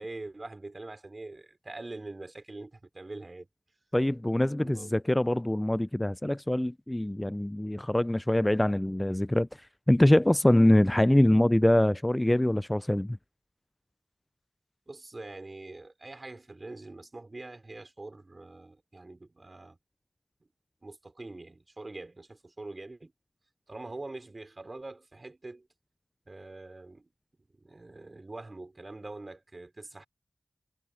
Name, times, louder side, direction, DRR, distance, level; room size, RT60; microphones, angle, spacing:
voice 1, 0.0-3.5 4.4-4.9 14.9-19.8 20.8-23.1 23.7-25.7 26.3-27.1 27.6-30.1, right 2 dB, 40° right, 4.8 m, -44 dB
voice 2, 3.9-9.5 9.9-13.2, left 1 dB, 15° left, 0.3 m, -24 dB
cardioid pair, 50°, 0 cm